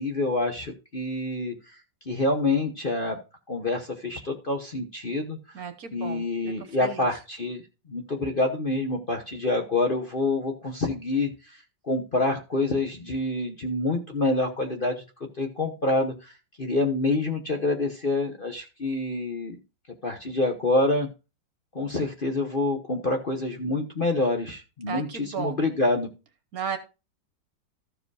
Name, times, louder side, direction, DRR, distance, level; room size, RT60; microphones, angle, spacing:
voice 1, 0.0-1.6 2.1-3.2 3.5-5.4 5.9-7.6 7.9-11.6 11.8-15.0 15.4-19.6 20.0-21.1 21.7-26.1, left 2 dB, 35° left, 3 dB, 1.0 m, -27 dB
voice 2, 5.5-7.1 24.9-25.6 26.5-26.8, right 7 dB, 55° right, 9 dB, 1.4 m, -34 dB
13.5 x 5.0 x 4.8 m, 0.30 s
omnidirectional pair, 2.0 m